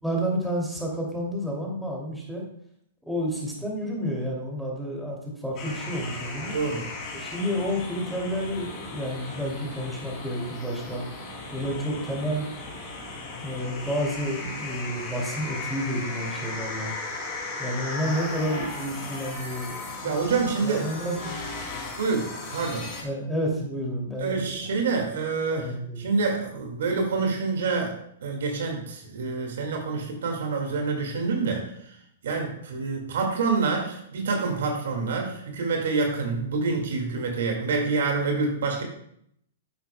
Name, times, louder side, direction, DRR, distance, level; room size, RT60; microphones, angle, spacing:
voice 1, 0.0-2.4 3.1-6.6 7.1-11.0 11.5-12.5 13.4-16.9 17.6-19.7 20.0-20.2 20.6-21.3 23.0-24.6 25.5-26.0, equal, ahead, -3 dB, 2.5 m, -30 dB
sound 1, 5.6-23.0, left 3 dB, 35° left, 2.7 m, -36 dB
voice 2, 6.5-6.8 20.0-20.9 22.0-22.9 24.2-28.0 28.2-31.9 32.2-38.8, right 4 dB, 70° right, 2 dB, 2.0 m, -27 dB
10.0 x 7.9 x 2.2 m, 0.70 s
hypercardioid pair, 120°, 0 cm